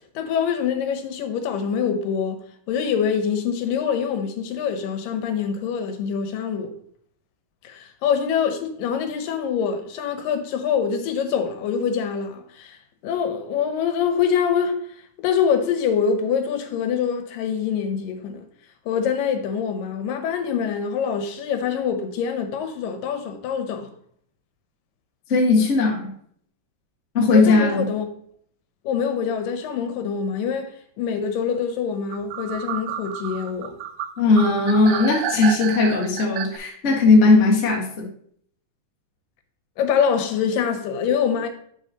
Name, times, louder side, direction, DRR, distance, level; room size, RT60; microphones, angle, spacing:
voice 1, 0.2-2.4 2.7-6.7 7.6-12.8 13.0-14.8 15.2-18.4 18.9-23.9 27.3-28.1 28.8-33.8 39.8-41.5, left 7 dB, 80° left, 2.5 m, -25 dB
voice 2, 25.3-26.1 27.1-27.9 34.2-38.1, left 3 dB, 35° left, 1.1 m, -18 dB
sound 1, 32.1-36.6, right 10 dB, 80° right, 1.9 m, -31 dB
7.0 x 6.9 x 2.8 m
omnidirectional pair, 3.9 m